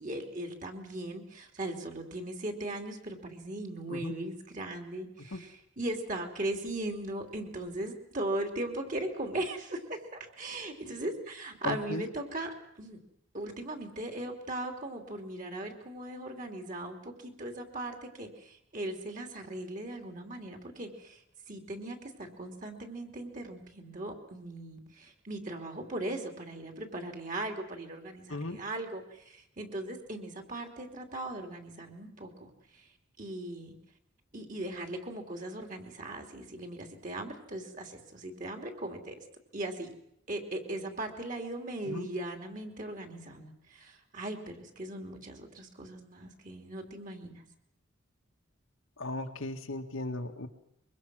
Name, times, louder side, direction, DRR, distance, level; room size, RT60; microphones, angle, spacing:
voice 1, 0.0-5.5 5.8-13.0 13.3-21.2 21.5-32.9 33.2-33.7 34.3-39.2 39.5-39.9 40.3-47.4, right 1 dB, 40° right, 4 dB, 3.1 m, -38 dB
voice 2, 11.6-12.0 28.3-28.6 41.8-42.1 49.0-50.5, left 2 dB, 80° left, 4 dB, 1.8 m, -36 dB
24.0 x 23.5 x 6.3 m, 0.77 s
head